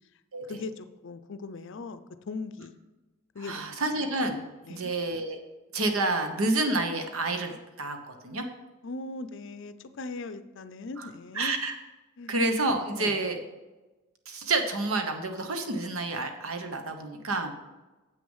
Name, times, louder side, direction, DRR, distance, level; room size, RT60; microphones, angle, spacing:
voice 1, 0.5-2.8 3.3-3.8 4.7-4.9 8.8-11.6 12.2-12.4 13.0-13.2, left 3 dB, 60° left, 0.5 m, -39 dB
voice 2, 3.4-4.4 4.7-5.4 5.7-8.4 11.0-11.1 11.3-11.7 12.3-13.4 14.3-17.6, right 2 dB, 80° right, 1.1 m, -29 dB
7.7 x 6.3 x 5.5 m
head